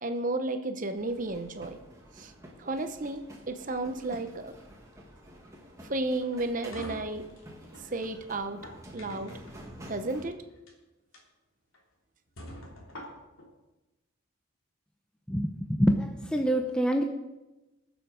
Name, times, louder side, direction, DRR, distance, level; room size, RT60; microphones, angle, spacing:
voice 1, 0.0-1.8 2.2-2.3 2.6-4.5 5.8-7.2 7.8-8.6 8.9-9.3 9.9-10.4, right 2 dB, 40° right, 8 dB, 0.9 m, -33 dB
sound 1, 1.0-10.3, equal, 15° right, 1.8 m, -49 dB
sound 2, 6.2-7.9 8.4-9.5 10.5-10.7 11.1-11.2 11.7-11.8 12.4-13.5, left 1 dB, 75° left, 3.3 m, -45 dB
voice 2, 15.3-17.0, equal, 5° left, 3 dB, 0.7 m, -26 dB
20.5 x 7.1 x 5.1 m, 1.0 s
head